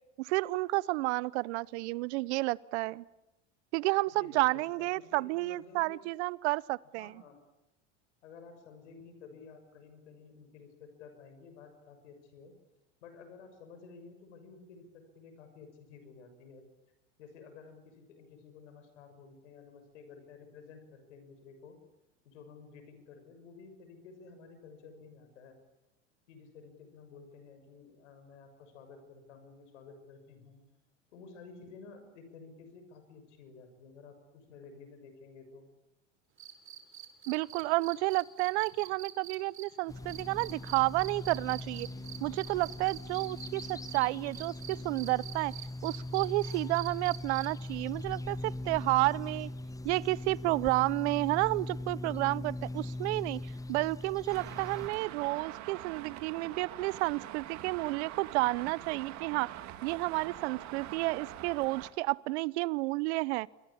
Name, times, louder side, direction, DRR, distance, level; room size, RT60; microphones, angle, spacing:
voice 1, 0.2-3.0 3.7-7.1 37.3-41.9 42.2-45.5 45.8-49.5 49.8-59.5 59.8-63.5, right 22 dB, 65° right, 22 dB, 0.8 m, -31 dB
voice 2, 4.1-6.0 7.0-7.4 8.2-12.5 13.0-16.7 17.2-21.8 22.3-25.6 26.3-30.6 31.1-35.7, left 5 dB, 80° left, 8 dB, 6.8 m, -53 dB
sound 1, 36.4-44.0 44.3-47.7 49.3-49.4, right 10 dB, 35° right, 4.1 m, -46 dB
sound 2, 39.9-54.9, left 1 dB, 10° left, 1.0 m, -41 dB
Traffic noise roadway noise, 54.3-61.9, right 13 dB, 50° right, 2.3 m, -44 dB
27.5 x 23.0 x 8.7 m, 1.0 s
hypercardioid pair, 100°, 36 cm